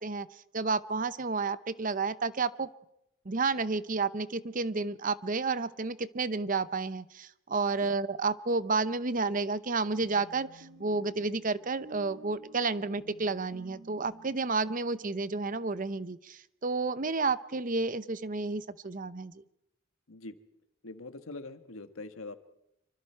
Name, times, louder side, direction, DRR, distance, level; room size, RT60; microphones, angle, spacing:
voice 1, 0.0-2.7 3.2-19.4, right 4 dB, 40° right, 15 dB, 0.7 m, -31 dB
sound 1, 10.0-14.4, right 2 dB, 60° right, 2.3 m, -52 dB
voice 2, 20.8-22.4, left 2 dB, 90° left, 9 dB, 1.5 m, -43 dB
27.0 x 24.5 x 4.5 m, 0.81 s
head